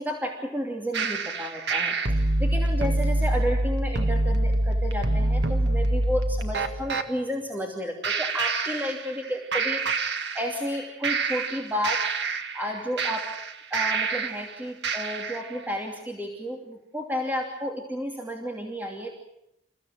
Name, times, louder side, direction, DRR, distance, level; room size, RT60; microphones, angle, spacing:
voice 1, 0.0-12.0 12.5-13.2 13.7-19.1, equal, 10° right, 1 dB, 2.8 m, -32 dB
sound 1, 0.9-7.1 8.0-9.3 9.5-10.7 11.0-14.5 14.8-15.5, right 2 dB, 65° right, 2.0 m, -26 dB
28.5 x 16.0 x 9.4 m, 0.80 s
head